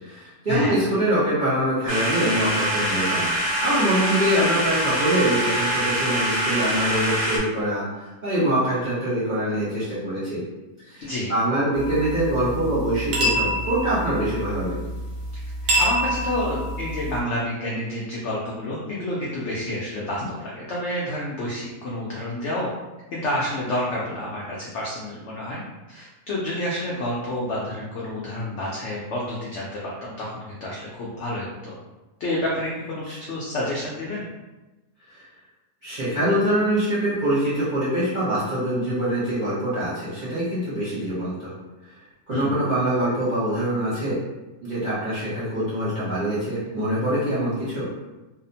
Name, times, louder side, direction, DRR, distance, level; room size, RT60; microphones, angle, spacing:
voice 1, 0.0-7.9 8.2-10.4 10.9-14.8 33.1-33.2 35.1-35.2 35.8-41.5 42.3-44.2 44.6-47.9, right 1 dB, 40° right, -10 dB, 0.7 m, -24 dB
sound 1, 1.9-7.4, right 1 dB, 50° left, 0.9 m, -24 dB
voice 2, 11.0-11.3 15.8-22.7 23.1-25.6 25.9-31.7 32.2-34.2 42.3-42.6, left 1 dB, 75° left, -5 dB, 0.6 m, -29 dB
sound 2, 11.7-17.2, equal, 85° right, 1.3 m, -27 dB
2.7 x 2.0 x 2.6 m, 1.1 s
omnidirectional pair, 1.7 m